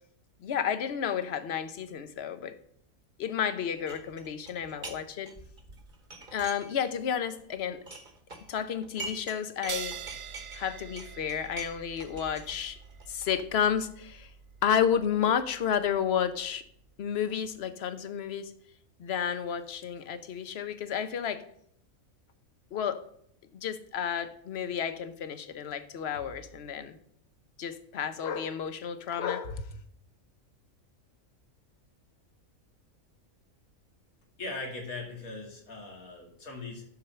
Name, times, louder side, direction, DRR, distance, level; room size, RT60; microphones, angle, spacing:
voice 1, 0.4-2.6 3.2-5.3 6.3-7.8 8.5-10.0 10.5-12.8 13.1-14.3 14.6-16.6 17.0-18.5 19.0-21.4 22.7-23.0 23.5-27.0 27.6-29.7, left 8 dB, 55° left, 0.9 m, -31 dB
sound 1, 3.9-5.0 5.3-7.0 7.3-9.4 9.6-13.4, right 3 dB, 35° right, 1.4 m, -44 dB
sound 2, 9.7-16.7, right 8 dB, 65° right, 0.9 m, -45 dB
voice 2, 34.4-36.9, left 3 dB, 90° left, 2.4 m, -39 dB
11.0 x 4.5 x 6.6 m
omnidirectional pair, 1.4 m